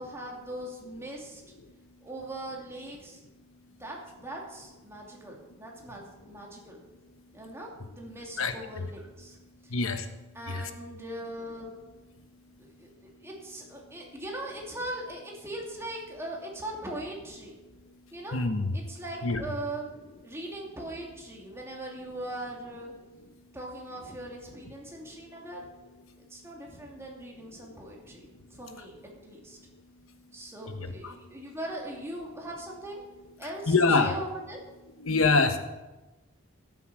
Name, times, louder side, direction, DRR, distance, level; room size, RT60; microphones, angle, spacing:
voice 1, 0.0-1.4 2.0-3.2 3.8-6.8 7.3-9.8 10.3-11.7 12.6-17.5 18.1-18.4 18.7-19.8 20.2-22.9 23.5-25.6 26.2-29.6 30.3-33.0 33.4-34.6, right 1 dB, 10° right, -2 dB, 2.6 m, -40 dB
voice 2, 9.7-10.1 10.5-10.7 18.3-18.7 19.2-19.4 30.7-30.8 31.0-31.1 33.7-34.1 35.0-35.6, left 3 dB, 70° left, 8 dB, 1.2 m, -24 dB
14.0 x 8.1 x 6.2 m, 1.1 s
head